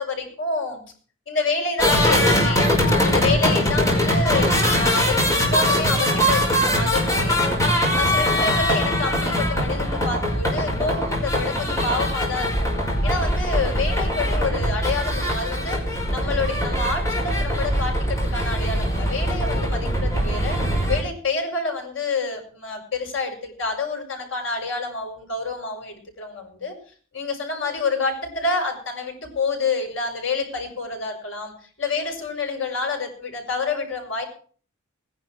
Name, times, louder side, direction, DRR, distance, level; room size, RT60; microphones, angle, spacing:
voice 1, 0.0-0.8 1.3-2.7 3.0-7.5 7.9-12.7 13.0-15.8 16.1-20.6 20.9-26.7 27.1-34.2, left 3 dB, 65° left, 2 dB, 6.7 m, -28 dB
sound 1, 1.8-21.0, equal, 15° left, 5.3 m, -22 dB
20.5 x 11.0 x 4.6 m, 0.43 s
head